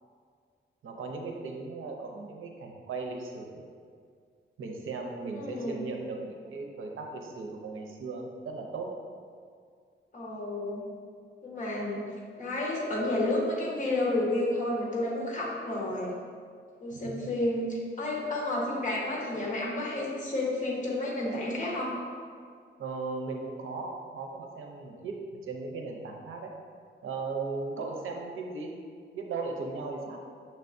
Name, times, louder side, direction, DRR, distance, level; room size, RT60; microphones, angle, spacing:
voice 1, 0.8-3.6 4.6-8.9 16.9-17.1 22.8-26.5 27.0-28.7 29.1-30.2, right 3 dB, 85° right, 1 dB, 0.6 m, -37 dB
voice 2, 5.3-5.9 10.1-10.8 11.4-12.1 12.4-16.2 16.8-21.9, left 1 dB, 40° left, -5 dB, 1.1 m, -31 dB
6.2 x 3.3 x 2.6 m, 2.1 s
wide cardioid pair, 135°, 20 cm